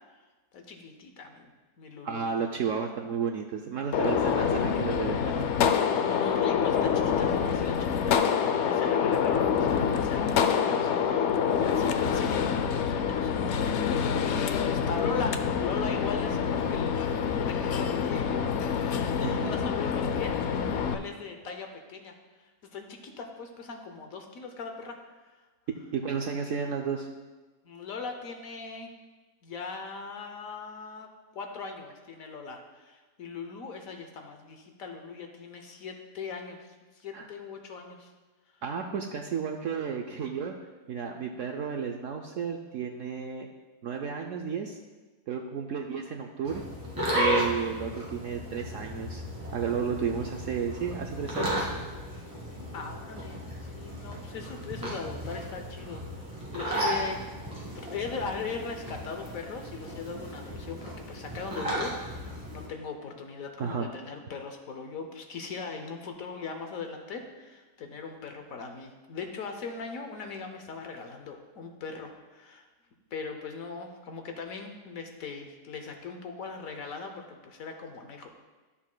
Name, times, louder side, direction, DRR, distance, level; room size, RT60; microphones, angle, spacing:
voice 1, 0.5-1.5 1.8-2.5 4.1-4.2 6.0-20.3 20.7-22.2 22.7-25.0 27.6-28.9 29.4-31.1 31.3-36.6 36.9-38.1 52.7-57.3 57.7-72.7 73.1-78.3, left 5 dB, 65° left, 4 dB, 1.1 m, -40 dB
voice 2, 2.0-5.5 19.2-19.5 25.9-27.1 37.1-37.3 38.6-40.5 40.9-43.5 43.8-44.8 45.3-46.6 47.1-49.2 49.5-51.6 63.6-63.9, right 6 dB, 70° right, 2 dB, 0.8 m, -32 dB
Gunshot gunfire, 3.9-20.9, left 7 dB, 85° left, 0.6 m, -26 dB
sound 1, 46.4-62.7, equal, 10° right, 2.0 m, -34 dB
12.5 x 7.2 x 2.2 m, 1.3 s
omnidirectional pair, 1.7 m